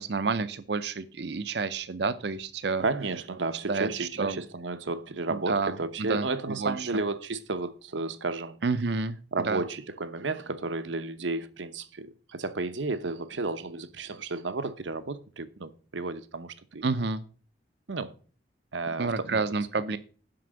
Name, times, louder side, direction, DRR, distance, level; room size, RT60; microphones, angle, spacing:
voice 1, 0.0-2.8 3.7-4.4 5.3-6.3 6.6-6.9 8.6-9.2 9.4-9.6 16.8-17.2 19.0-20.0, right 4 dB, 60° right, 0.6 m, -29 dB
voice 2, 2.8-8.6 9.3-16.9 17.9-18.1 18.7-19.4, right 3 dB, 85° right, 0.9 m, -32 dB
7.8 x 6.0 x 7.7 m
head